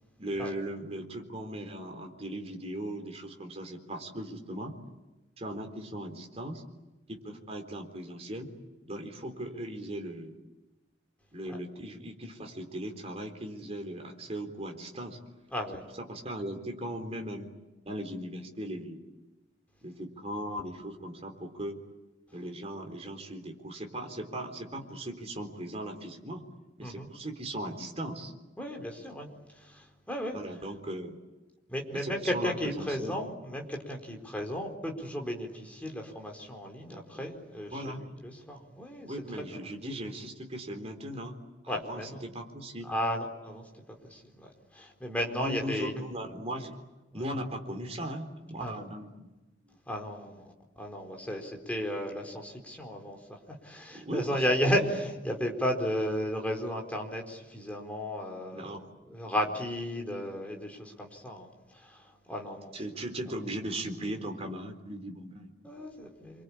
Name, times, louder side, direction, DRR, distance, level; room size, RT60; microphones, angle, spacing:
voice 1, 0.2-4.8 5.4-6.6 7.1-8.5 8.8-10.4 11.3-15.2 16.0-17.5 17.9-19.0 19.8-21.8 22.3-26.4 26.8-28.3 30.3-31.2 31.9-33.2 36.9-37.3 37.7-38.0 39.1-42.9 45.3-46.8 47.1-49.3 49.7-49.8 53.9-54.8 58.5-58.9 62.7-65.5, right 1 dB, 35° right, 3 dB, 4.0 m, -38 dB
voice 2, 15.5-15.8 26.8-27.1 28.6-30.4 31.7-39.1 39.5-39.7 41.7-42.2 42.8-46.0 47.1-47.3 48.6-48.9 49.9-50.5 50.8-58.6 59.0-62.7 65.6-66.4, equal, 10° left, 2 dB, 4.3 m, -34 dB
28.0 x 24.5 x 8.6 m, 1.1 s
head